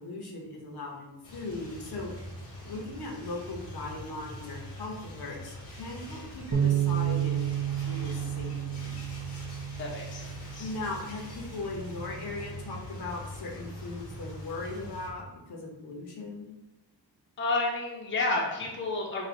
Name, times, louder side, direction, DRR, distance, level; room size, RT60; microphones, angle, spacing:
voice 1, 0.0-2.1 2.6-9.0 10.6-16.5, left 2 dB, 60° left, 0 dB, 0.9 m, -39 dB
sound 1, 1.2-15.1, left 1 dB, 80° left, 1.4 m, -43 dB
Bass guitar, 6.5-12.8, right 10 dB, 40° right, 0.5 m, -32 dB
voice 2, 9.8-10.7 17.4-19.3, left 2 dB, 30° left, -2 dB, 0.6 m, -31 dB
3.3 x 2.6 x 3.8 m, 0.96 s
wide cardioid pair, 130°, 42 cm